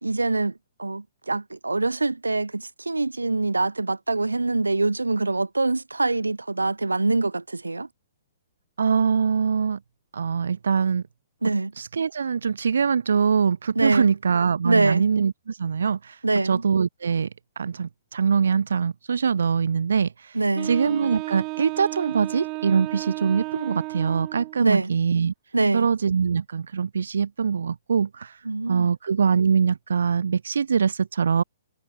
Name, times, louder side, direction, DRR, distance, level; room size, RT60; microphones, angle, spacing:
voice 1, 0.0-0.5 0.8-7.9 11.4-11.7 13.8-14.1 14.6-15.1 16.2-16.7 20.3-20.7 24.6-24.9 25.5-25.9 28.5-28.9, right 3 dB, 80° right, 1.9 m, -24 dB
voice 2, 8.8-9.8 10.1-11.0 11.8-17.3 17.6-25.3 25.7-31.4, right 6 dB, 65° right, 0.4 m, -23 dB
Wind instrument woodwind instrument, 20.5-24.6, right 27 dB, 30° right, 0.8 m, -33 dB
figure-of-eight pair, 120°, 0 cm